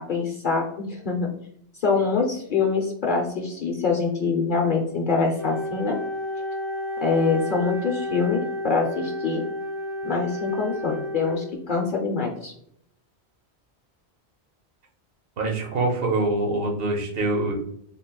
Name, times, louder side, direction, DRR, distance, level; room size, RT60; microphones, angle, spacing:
voice 1, 0.0-1.3 1.7-6.0 7.0-9.4 10.0-12.5, left 4 dB, 55° left, 1 dB, 0.7 m, -25 dB
Wind instrument woodwind instrument, 5.4-11.7, left 1 dB, 90° right, 1.3 m, -31 dB
voice 2, 15.4-17.5, right 2 dB, 60° right, 0 dB, 1.1 m, -24 dB
3.9 x 3.8 x 2.2 m, 0.69 s
omnidirectional pair, 1.1 m